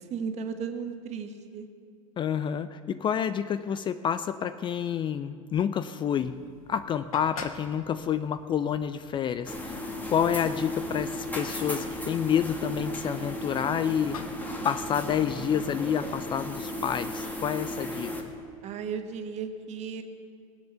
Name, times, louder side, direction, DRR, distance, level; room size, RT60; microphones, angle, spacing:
voice 1, 0.1-1.7 18.6-20.0, right 6 dB, 40° right, 6 dB, 1.4 m, -35 dB
voice 2, 2.2-6.4 6.7-9.8 10.1-14.2 14.6-18.3, left 8 dB, 25° left, 12 dB, 0.4 m, -29 dB
sound 1, 6.2-16.9, left 6 dB, 90° left, 1.1 m, -48 dB
sound 2, 9.4-18.2, left 1 dB, 10° left, 1.8 m, -35 dB
19.5 x 7.9 x 6.8 m, 2.3 s
hypercardioid pair, 105°, 18 cm